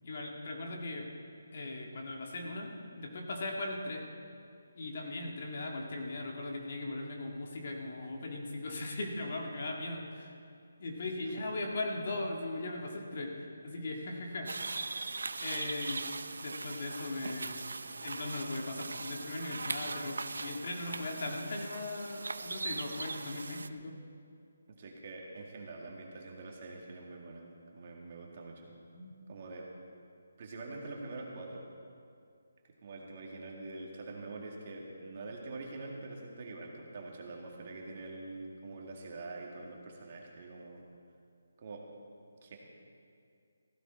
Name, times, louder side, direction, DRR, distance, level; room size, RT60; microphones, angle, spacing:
voice 1, 0.0-1.1 1.5-4.0 4.8-10.3 10.8-14.6 15.4-16.0 16.4-24.0 28.9-29.2, left 2 dB, 40° left, 0 dB, 1.8 m, -39 dB
sound 1, 14.4-23.7, right 3 dB, 80° right, 0.6 m, -40 dB
voice 2, 24.7-28.7 29.3-29.7 30.4-31.7 32.8-40.8 41.6-41.8 42.4-42.6, right 3 dB, 30° right, -1 dB, 2.0 m, -45 dB
15.5 x 15.0 x 4.5 m, 2.4 s
hypercardioid pair, 175°, 0 cm